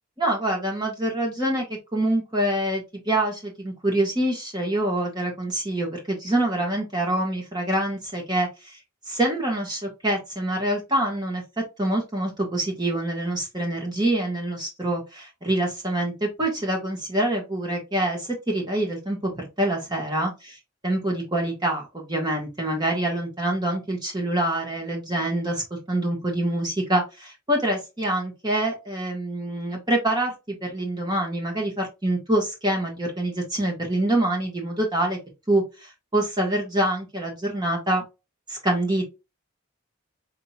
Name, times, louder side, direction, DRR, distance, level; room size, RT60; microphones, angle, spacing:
voice 1, 0.2-1.7 1.9-8.8 9.1-11.4 11.8-20.6 20.8-35.2 35.5-38.0 38.5-39.0, right 1 dB, 20° right, 0 dB, 1.6 m, -26 dB
5.2 x 4.2 x 2.4 m, 0.25 s
head